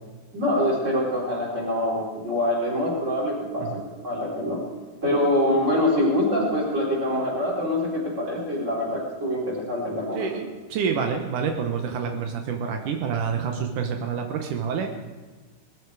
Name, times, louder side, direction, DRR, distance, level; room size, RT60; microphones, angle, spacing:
voice 1, 0.3-4.6 5.0-10.3, left 1 dB, 15° right, -4 dB, 4.6 m, -25 dB
voice 2, 10.1-14.9, right 6 dB, 85° right, 4 dB, 1.8 m, -28 dB
20.0 x 14.0 x 4.8 m, 1.4 s
omnidirectional pair, 5.4 m